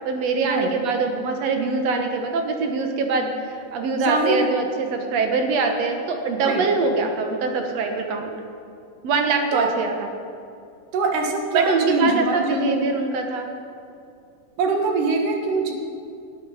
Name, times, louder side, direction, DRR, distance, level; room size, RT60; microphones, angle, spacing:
voice 1, 0.0-8.3 9.0-9.9 11.5-13.5, right 4 dB, 60° right, 4 dB, 2.2 m, -23 dB
voice 2, 3.9-4.5 6.4-6.7 9.5-9.7 10.9-12.9 14.6-15.7, right 3 dB, 80° right, 2 dB, 3.0 m, -23 dB
18.5 x 8.6 x 5.7 m, 2.5 s
omnidirectional pair, 3.7 m